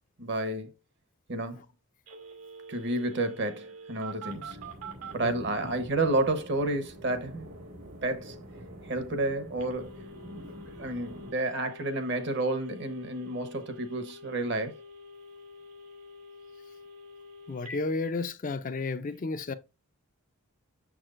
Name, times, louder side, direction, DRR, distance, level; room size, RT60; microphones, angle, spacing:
voice 1, 0.2-0.7 1.3-1.6 2.7-4.6 5.1-7.5 8.0-8.3 8.8-14.8, right 2 dB, 50° right, 1.0 m, -31 dB
Telephone, 2.1-5.2 9.6-17.8, right 1 dB, 85° right, 2.2 m, -47 dB
sound 1, 4.2-11.3, equal, 70° right, 1.6 m, -47 dB
voice 2, 17.5-19.5, left 3 dB, 35° left, 0.4 m, -32 dB
7.0 x 6.1 x 2.5 m
head